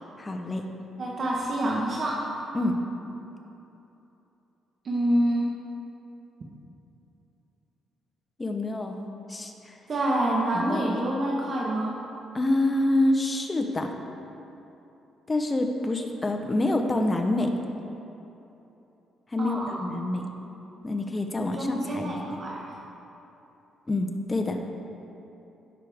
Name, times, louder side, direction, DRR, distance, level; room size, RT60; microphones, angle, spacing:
voice 1, 0.2-0.7 2.5-2.8 8.4-9.0 9.3-9.8 10.5-10.9 12.3-13.9 15.3-17.5 19.3-20.3 20.8-22.2 23.9-24.6, left 2 dB, 25° left, 4 dB, 1.0 m, -27 dB
voice 2, 1.0-2.3 4.8-5.5 9.9-12.0 19.4-19.8 21.4-22.7, right 1 dB, 50° right, -3 dB, 1.3 m, -27 dB
17.0 x 6.5 x 3.6 m, 3.0 s
cardioid pair, 90°, 0 cm